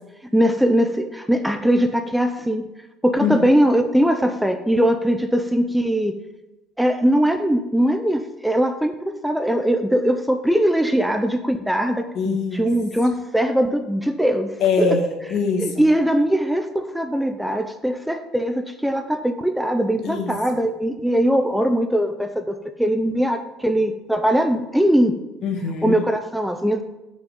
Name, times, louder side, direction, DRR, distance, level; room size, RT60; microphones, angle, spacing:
voice 1, 0.3-2.7 3.0-6.1 6.8-14.5 14.8-15.0 15.6-25.1 25.8-26.8, equal, ahead, 7 dB, 0.5 m, -21 dB
voice 2, 12.1-12.7 14.6-15.8 20.0-20.3 25.4-26.0, left 5 dB, 60° left, 3 dB, 1.7 m, -23 dB
7.2 x 6.2 x 5.3 m, 0.99 s
cardioid pair, 125°, 0 cm